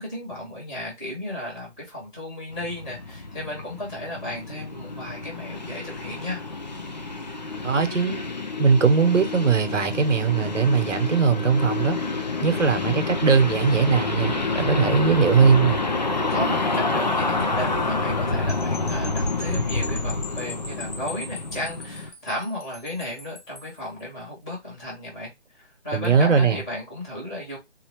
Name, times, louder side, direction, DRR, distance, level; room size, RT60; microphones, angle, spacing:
voice 1, 0.0-6.4 12.5-12.7 14.7-14.8 16.3-27.6, left 1 dB, 5° left, 0.8 m, -34 dB
sound 1, 2.5-22.1, left 3 dB, 40° left, 0.5 m, -28 dB
voice 2, 7.6-8.2 8.6-12.0 12.4-15.8 25.9-26.6, right 5 dB, 90° right, 1.1 m, -20 dB
sound 2, 18.5-23.8, left 3 dB, 85° left, 1.2 m, -40 dB
4.3 x 2.8 x 2.9 m
hypercardioid pair, 165°, 36 cm